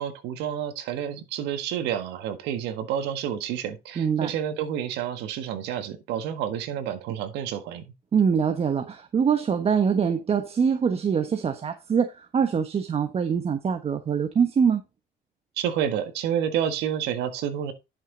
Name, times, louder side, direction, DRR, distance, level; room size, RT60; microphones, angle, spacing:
voice 1, 0.0-7.8 15.6-17.7, right 9 dB, 90° right, 1.6 m, -29 dB
voice 2, 4.0-4.3 8.1-14.8, right 6 dB, 35° right, 1.2 m, -24 dB
11.0 x 6.2 x 3.8 m
cardioid pair, 110°, 17 cm